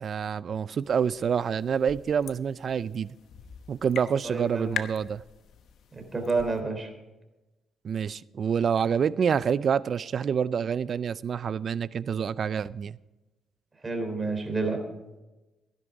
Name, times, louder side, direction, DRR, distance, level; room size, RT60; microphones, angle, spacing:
voice 1, 0.0-3.1 3.7-5.2 7.8-13.0, right 7 dB, 50° right, 0.5 m, -27 dB
sound 1, 0.8-6.6, left 8 dB, 70° left, 1.0 m, -42 dB
voice 2, 4.2-4.8 5.9-6.9 13.8-14.8, right 3 dB, 25° right, 3.5 m, -29 dB
16.0 x 10.5 x 4.9 m
cardioid pair, 90°, 0 cm